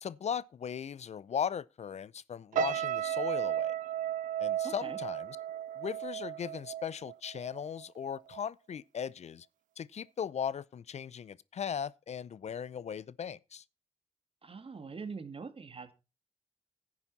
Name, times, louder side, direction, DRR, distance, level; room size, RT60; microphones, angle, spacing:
voice 1, 0.0-3.7 4.4-5.4 5.8-9.5 9.8-13.6, left 8 dB, 60° left, 0.6 m, -38 dB
sound 1, 2.5-7.8 8.2-8.5, right 11 dB, 80° right, 0.5 m, -34 dB
voice 2, 4.6-5.0 14.4-15.9, right 5 dB, 45° right, 2.1 m, -43 dB
11.0 x 9.6 x 4.1 m
supercardioid pair, 50°, 13 cm